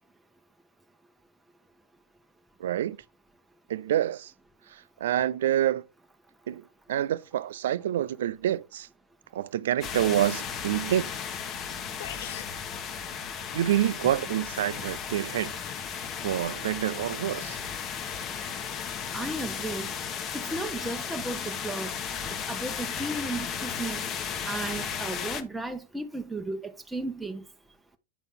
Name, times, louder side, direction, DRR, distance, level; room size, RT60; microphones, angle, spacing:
voice 1, 2.6-3.0 3.7-4.3 4.7-5.9 6.5-8.9 9.3-11.1 13.5-15.5 16.2-17.6, right 12 dB, 70° right, 0.5 m, -27 dB
sound 1, 9.8-25.4, left 7 dB, 40° left, 1.2 m, -35 dB
sound 2, 12.0-12.6, left 12 dB, 70° left, 0.6 m, -39 dB
voice 2, 19.1-19.9 20.3-21.9 22.5-24.0 24.5-27.4, right 2 dB, 5° right, 0.9 m, -34 dB
10.0 x 4.0 x 3.7 m
hypercardioid pair, 95°, 0 cm